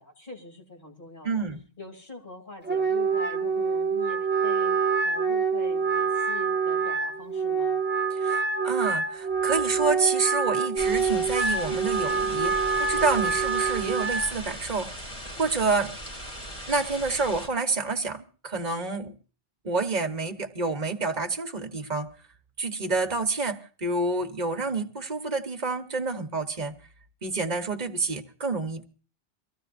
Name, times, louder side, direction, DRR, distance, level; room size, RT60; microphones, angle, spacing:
voice 1, 0.0-1.4 1.8-4.8 5.0-7.7, left 3 dB, 45° left, 3.1 m, -43 dB
voice 2, 1.2-1.6 8.1-14.9 15.4-15.9 16.7-19.1 19.6-22.1 22.6-26.7 27.2-28.8, right 3 dB, 40° right, 1.3 m, -28 dB
Wind instrument woodwind instrument, 2.6-14.3, right 5 dB, 10° right, 0.8 m, -26 dB
sound 1, 10.8-17.5, equal, 30° left, 3.1 m, -39 dB
24.0 x 15.0 x 2.6 m
omnidirectional pair, 1.2 m